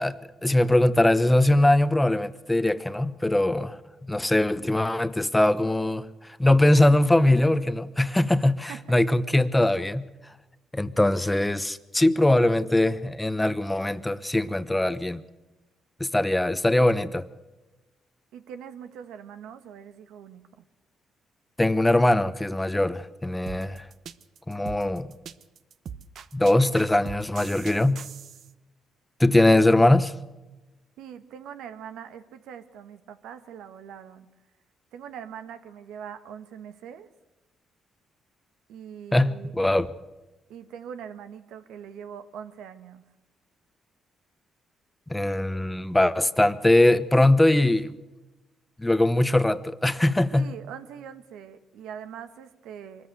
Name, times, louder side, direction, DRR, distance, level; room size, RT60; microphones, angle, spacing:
voice 1, 0.0-6.1 6.4-10.1 10.7-15.2 16.0-17.3 21.6-23.9 24.5-25.1 26.3-28.0 29.2-30.1 39.1-39.9 45.1-47.9 48.8-50.5, left 1 dB, 10° left, 0.9 m, -21 dB
voice 2, 18.3-20.6 31.0-34.3 34.9-37.1 38.7-39.6 40.5-43.0 50.3-53.1, right 8 dB, 85° right, 1.3 m, -42 dB
sound 1, 23.5-28.5, right 7 dB, 65° right, 0.9 m, -41 dB
24.0 x 14.0 x 7.9 m
cardioid pair, 90°, 0 cm